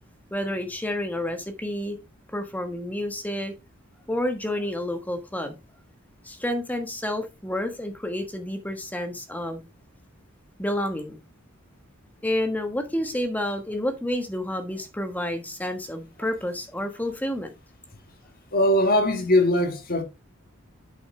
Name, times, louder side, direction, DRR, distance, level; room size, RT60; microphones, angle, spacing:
voice 1, 0.3-2.0 2.3-3.5 4.1-5.6 6.2-9.6 10.6-11.2 12.2-17.5, left 1 dB, 10° left, 1.2 m, -29 dB
voice 2, 18.5-20.0, left 1 dB, 45° left, 1.7 m, -20 dB
8.1 x 6.4 x 3.2 m
head